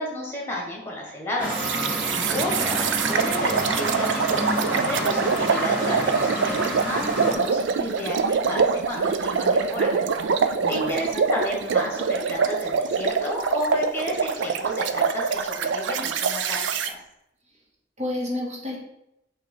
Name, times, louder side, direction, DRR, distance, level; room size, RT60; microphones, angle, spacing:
voice 1, 0.0-1.6 2.3-9.9 10.7-17.0, left 1 dB, 10° left, -1 dB, 1.5 m, -31 dB
sound 1, 1.4-7.3, equal, 5° right, 1.4 m, -29 dB
sound 2, 1.5-16.9, right 5 dB, 75° right, 0.4 m, -25 dB
voice 2, 2.1-2.7 10.5-10.9 18.0-18.8, left 1 dB, 35° right, -6 dB, 2.1 m, -31 dB
5.9 x 3.0 x 5.5 m, 0.83 s
head